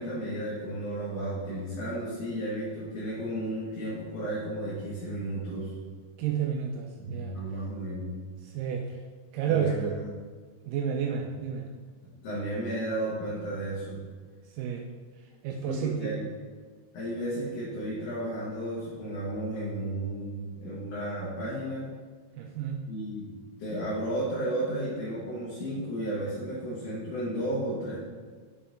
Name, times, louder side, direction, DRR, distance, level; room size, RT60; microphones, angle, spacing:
voice 1, 0.0-5.7 7.0-8.1 9.5-10.1 12.2-14.0 15.5-16.3 16.9-21.9 22.9-23.3 23.6-28.1, right 1 dB, 65° left, -8 dB, 2.8 m, -33 dB
voice 2, 6.2-7.3 8.6-8.9 9.3-10.0 10.7-11.7 14.6-14.9 15.4-16.2 22.4-22.8, right 7 dB, 80° right, 2 dB, 2.1 m, -30 dB
6.3 x 5.7 x 4.2 m, 1.5 s
omnidirectional pair, 3.9 m